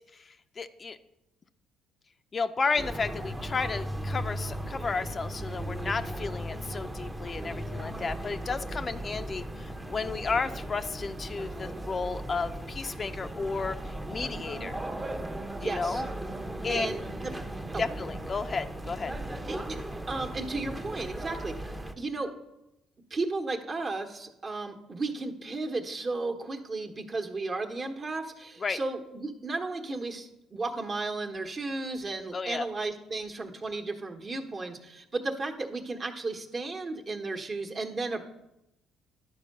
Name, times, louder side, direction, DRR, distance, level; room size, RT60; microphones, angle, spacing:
voice 1, 0.6-1.0 2.3-14.8 15.6-16.0 16.6-16.9 17.8-19.1 28.6-28.8 32.3-32.7, left 4 dB, 35° left, 9 dB, 0.5 m, -32 dB
sound 1, 2.8-21.9, right 1 dB, 15° right, 0.8 m, -37 dB
voice 2, 15.6-16.0 16.7-17.3 17.7-18.1 19.5-19.8 20.1-22.3 23.1-38.2, right 3 dB, 35° right, 4 dB, 1.1 m, -34 dB
10.5 x 4.6 x 6.6 m, 0.89 s
cardioid pair, 85°, 0 cm